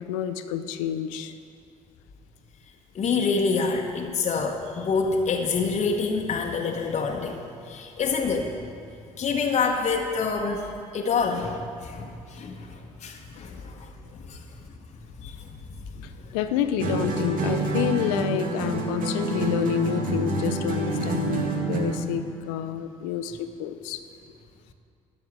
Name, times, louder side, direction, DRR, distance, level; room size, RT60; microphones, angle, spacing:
voice 1, 0.0-1.3 13.3-13.6 16.0-24.0, left 9 dB, 70° left, 10 dB, 0.6 m, -29 dB
voice 2, 2.9-8.7 9.2-14.7 15.2-16.4, left 4 dB, 40° left, 1 dB, 1.0 m, -27 dB
sound 1, 16.8-22.1, right 3 dB, 50° right, 1.6 m, -27 dB
11.5 x 7.0 x 6.0 m, 2.4 s
hypercardioid pair, 55°, 17 cm